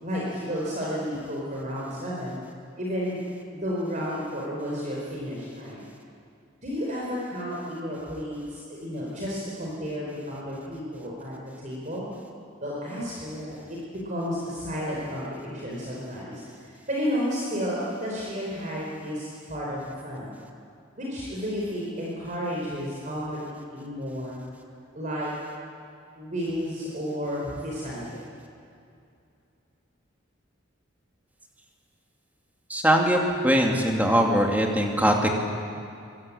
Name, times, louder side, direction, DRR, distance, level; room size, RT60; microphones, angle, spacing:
voice 1, 0.0-2.4 2.7-3.2 3.5-5.8 6.6-11.3 11.6-12.1 12.6-13.8 14.0-20.4 21.0-24.4 24.9-25.3 26.1-28.2, equal, 40° right, -5 dB, 4.9 m, -32 dB
voice 2, 32.7-35.3, equal, 10° right, 1 dB, 2.7 m, -21 dB
24.0 x 22.5 x 8.8 m, 2.5 s
head